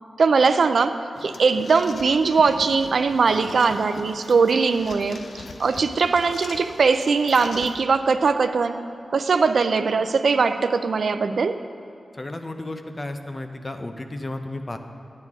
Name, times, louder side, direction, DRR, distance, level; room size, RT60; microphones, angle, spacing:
voice 1, 0.2-8.8 9.1-11.6, right 4 dB, 75° right, 10 dB, 0.4 m, -20 dB
sound 1, 1.1-7.9, left 3 dB, 70° left, 0.6 m, -41 dB
voice 2, 12.1-14.8, left 2 dB, 25° left, 6 dB, 0.6 m, -33 dB
12.0 x 9.6 x 3.6 m, 2.6 s
wide cardioid pair, 120°, 0 cm